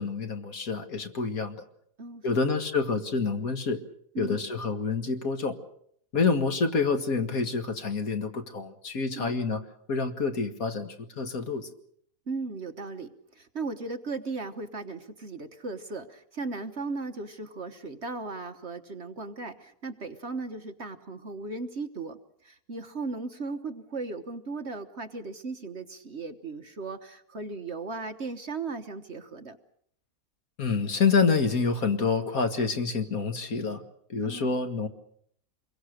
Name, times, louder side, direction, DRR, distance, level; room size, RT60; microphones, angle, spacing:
voice 1, 0.0-1.7 2.2-3.8 4.2-5.6 6.1-9.6 9.9-11.7 30.6-33.8 34.1-34.9, left 4 dB, 55° left, 7 dB, 2.2 m, -27 dB
voice 2, 2.0-2.5 4.1-4.4 9.1-9.4 12.3-29.6 34.2-34.6, right 3 dB, 45° right, 7 dB, 1.4 m, -37 dB
26.5 x 23.0 x 6.6 m, 0.66 s
omnidirectional pair, 1.8 m